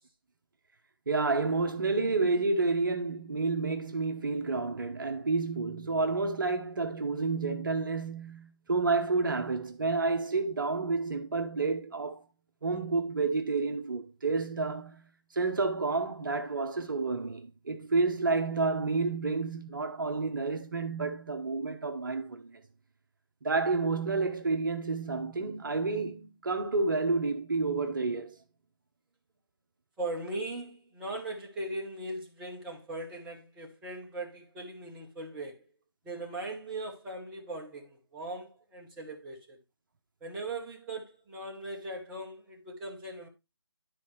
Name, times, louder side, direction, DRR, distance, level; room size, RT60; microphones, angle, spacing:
voice 1, 1.1-12.2 12.6-15.0 15.3-22.6 23.4-28.4, right 3 dB, 45° right, 1.0 m, -30 dB
voice 2, 30.0-35.6 36.0-39.6 40.2-43.3, right 2 dB, 5° right, 0.7 m, -39 dB
12.0 x 4.2 x 3.1 m
figure-of-eight pair, 155°, 15 cm